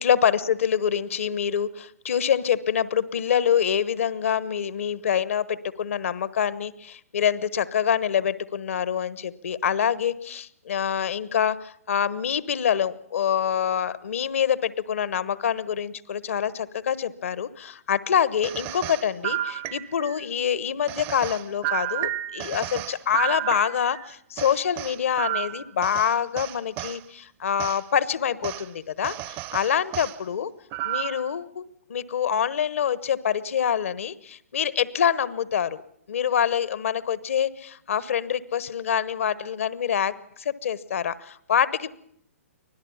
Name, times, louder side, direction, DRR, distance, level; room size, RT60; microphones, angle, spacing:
voice 1, 0.0-30.5 30.8-31.6 31.9-35.8 36.1-41.9, left 8 dB, 60° left, 18 dB, 1.2 m, -26 dB
sound 1, 18.4-20.2 20.9-24.0 24.4-27.0 27.6-27.8 28.4-28.6 29.0-30.1 30.7-31.3, right 14 dB, 30° right, 0.8 m, -31 dB
24.5 x 17.0 x 7.2 m, 0.70 s
figure-of-eight pair, 125°, 8 cm